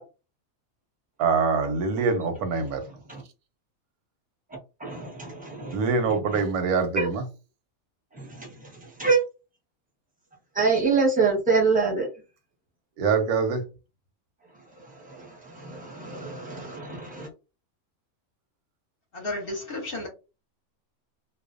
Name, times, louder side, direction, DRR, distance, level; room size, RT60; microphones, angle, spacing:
voice 1, 1.2-2.8 5.7-7.2 13.0-13.6, right 5 dB, 90° right, 1.1 m, -24 dB
voice 2, 4.8-5.8 6.3-6.4 7.0-7.1 8.1-9.2 10.5-12.1 14.8-17.3, right 4 dB, 10° right, 0.6 m, -26 dB
voice 3, 19.1-20.1, left 2 dB, 50° left, 0.8 m, -32 dB
2.5 x 2.1 x 2.4 m
omnidirectional pair, 1.5 m